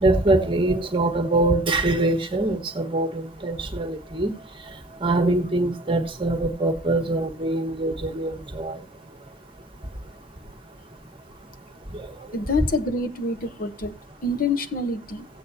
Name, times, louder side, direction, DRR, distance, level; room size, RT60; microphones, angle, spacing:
voice 1, 0.0-4.3 5.0-8.8, right 2 dB, 30° right, 1.3 m, -23 dB
voice 2, 12.3-13.9 14.2-15.3, left 2 dB, 50° left, 0.9 m, -26 dB
15.5 x 8.6 x 2.7 m
head